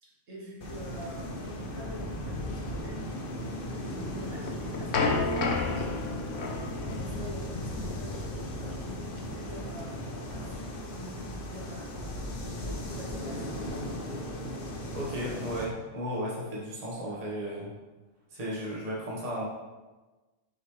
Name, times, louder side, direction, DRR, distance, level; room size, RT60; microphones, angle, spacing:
voice 1, 0.0-3.0 3.8-6.3 6.8-10.0 10.3-13.8, left 1 dB, 75° right, -5 dB, 1.9 m, -45 dB
sound 1, 0.6-15.7, left 1 dB, 50° left, 0.9 m, -37 dB
sound 2, 4.2-9.1, left 3 dB, 75° left, 1.1 m, -32 dB
voice 2, 14.9-17.7 18.3-19.4, equal, 30° right, -5 dB, 1.3 m, -34 dB
6.5 x 4.9 x 3.2 m, 1.2 s
omnidirectional pair, 1.3 m